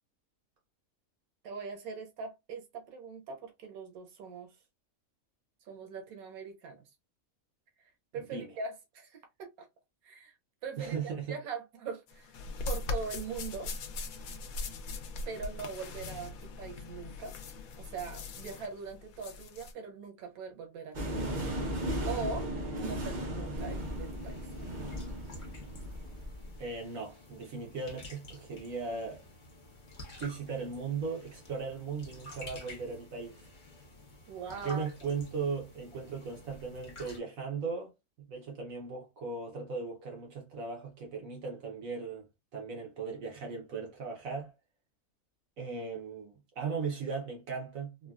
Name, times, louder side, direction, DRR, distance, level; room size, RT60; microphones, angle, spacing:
voice 1, 1.4-4.5 5.7-6.8 8.1-9.7 10.0-10.3 10.6-12.4 12.6-13.7 15.3-17.4 17.8-21.3 22.0-24.4 34.3-34.9, right 5 dB, 90° right, 1.3 m, -41 dB
voice 2, 8.2-8.5 10.8-11.4 26.6-29.2 30.2-33.5 34.6-37.9 38.3-42.3 42.5-44.5 45.6-48.1, right 5 dB, 70° right, 1.3 m, -37 dB
sound 1, 12.1-19.7, left 3 dB, 85° left, 1.1 m, -40 dB
sound 2, 20.9-26.6, equal, 45° right, 0.7 m, -36 dB
sound 3, 23.6-37.2, left 1 dB, 40° left, 0.9 m, -51 dB
3.7 x 2.2 x 2.3 m
omnidirectional pair, 1.5 m